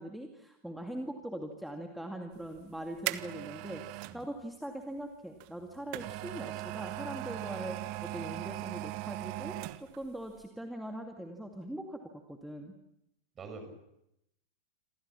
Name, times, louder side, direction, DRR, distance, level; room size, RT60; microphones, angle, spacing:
voice 1, 0.0-12.0 12.3-12.7, right 1 dB, ahead, 3 dB, 2.4 m, -42 dB
sound 1, 2.4-4.2 5.4-10.1 10.4-10.5, right 18 dB, 45° right, 1.2 m, -39 dB
voice 2, 13.4-13.8, right 3 dB, 25° right, 6 dB, 7.0 m, -45 dB
28.0 x 27.0 x 5.9 m, 0.80 s
figure-of-eight pair, 90°, 0 cm